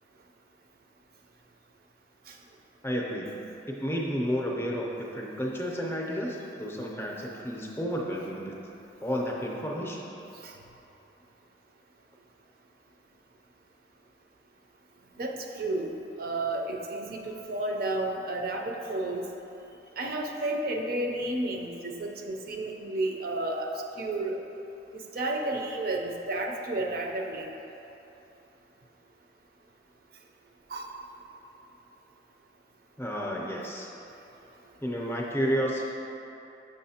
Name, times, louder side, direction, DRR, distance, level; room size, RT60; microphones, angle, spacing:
voice 1, 2.8-3.4 3.7-8.6 9.0-10.1 33.0-33.9 34.8-35.9, equal, 15° left, -2 dB, 0.6 m, -31 dB
voice 2, 15.2-15.9 16.2-19.3 20.0-24.4 25.1-27.5 30.7-30.9, right 2 dB, 55° right, 2 dB, 0.5 m, -32 dB
6.4 x 6.2 x 2.8 m, 3.0 s
head